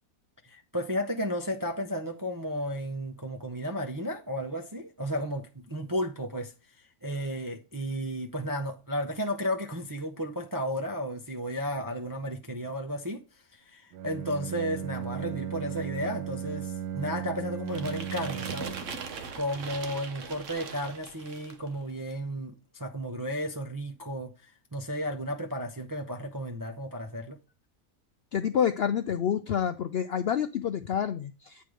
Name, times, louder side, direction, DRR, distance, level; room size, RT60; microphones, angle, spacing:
voice 1, 0.4-13.2 13.5-18.8 19.3-27.4, equal, 25° right, 0.4 m, -33 dB
Bowed string instrument, 13.9-19.0, right 9 dB, 85° right, 1.3 m, -36 dB
sound 1, 17.7-21.7, right 5 dB, 60° right, 1.2 m, -40 dB
voice 2, 28.3-31.6, left 8 dB, 70° left, 0.6 m, -28 dB
9.2 x 3.4 x 6.2 m
omnidirectional pair, 1.6 m